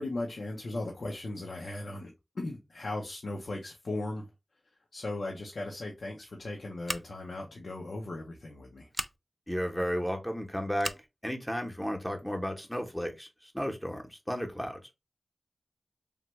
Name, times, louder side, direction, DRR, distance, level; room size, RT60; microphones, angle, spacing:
voice 1, 0.0-4.3 4.9-8.9, left 2 dB, 90° left, 0.5 m, -37 dB
Scissors, 6.8-7.4 8.9-9.2 10.8-11.1, right 1 dB, 25° right, 0.3 m, -36 dB
voice 2, 9.5-10.9 11.2-14.9, equal, 5° left, 0.7 m, -33 dB
3.1 x 2.2 x 2.9 m
wide cardioid pair, 50°, 0 cm